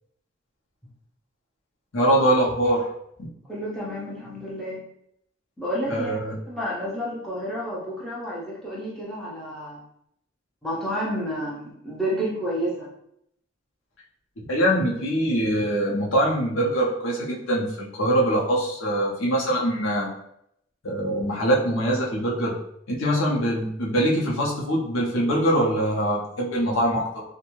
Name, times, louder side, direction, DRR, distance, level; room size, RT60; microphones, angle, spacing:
voice 1, 1.9-2.9 5.9-6.3 14.5-20.1 20.8-22.5 22.9-27.2, right 1 dB, 80° left, -3 dB, 0.7 m, -23 dB
voice 2, 3.5-4.8 5.6-6.2 6.5-9.8 10.6-12.9, equal, ahead, -7 dB, 0.6 m, -30 dB
2.6 x 2.1 x 3.0 m, 0.75 s
head